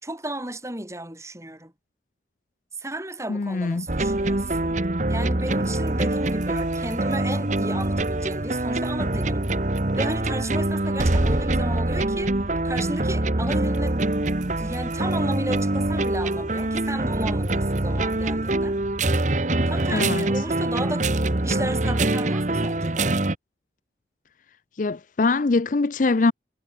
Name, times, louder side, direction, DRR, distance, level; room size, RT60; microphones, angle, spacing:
voice 1, 0.0-1.7 2.8-4.8 5.1-9.5 9.9-12.4 12.6-14.2 14.6-18.7 19.7-21.1 21.4-23.1, right 1 dB, 15° right, 6.4 m, -33 dB
voice 2, 3.3-3.9 19.9-20.3 24.8-26.3, left 3 dB, 45° left, 0.5 m, -23 dB
sound 1, 3.9-23.4, right 2 dB, 40° right, 1.3 m, -24 dB
head